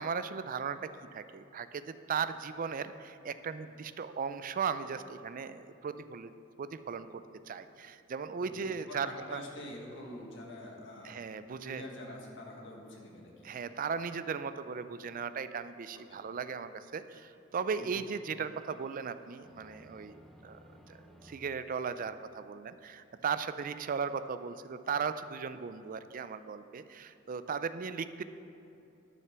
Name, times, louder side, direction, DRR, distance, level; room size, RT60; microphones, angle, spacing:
voice 1, 0.0-6.3 6.6-9.4 11.0-11.8 13.4-20.6 20.9-28.2, right 6 dB, 45° right, 12 dB, 0.4 m, -37 dB
voice 2, 8.4-11.2 11.6-13.5 15.9-16.2 17.8-18.0, left 1 dB, 65° left, 0 dB, 1.6 m, -46 dB
sound 1, 18.0-22.8, equal, ahead, 0.6 m, -59 dB
10.5 x 6.5 x 6.0 m, 2.8 s
head